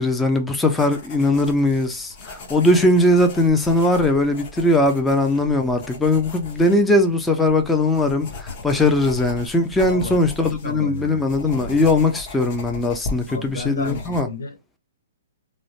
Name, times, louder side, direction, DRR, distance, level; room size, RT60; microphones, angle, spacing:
voice 1, 0.0-14.3, left 2 dB, 5° left, 0.4 m, -19 dB
sound 1, 0.7-14.2, left 3 dB, 35° left, 0.9 m, -38 dB
voice 2, 9.8-11.8 13.3-14.8, left 2 dB, 80° left, 1.2 m, -33 dB
2.6 x 2.0 x 3.0 m
hypercardioid pair, 160°, 0 cm